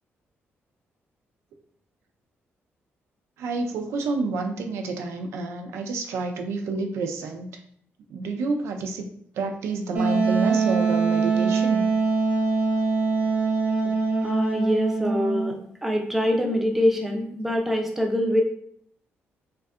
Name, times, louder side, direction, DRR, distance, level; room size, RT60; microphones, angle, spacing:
voice 1, 3.4-7.5 8.1-11.9 13.8-14.0, right 3 dB, 85° right, 4 dB, 0.3 m, -29 dB
Wind instrument woodwind instrument, 9.9-15.5, right 4 dB, 45° right, 0.7 m, -23 dB
voice 2, 14.2-15.6 15.8-18.4, equal, 5° right, 1 dB, 0.3 m, -24 dB
2.6 x 2.2 x 2.3 m, 0.64 s
cardioid pair, 155°, 5 cm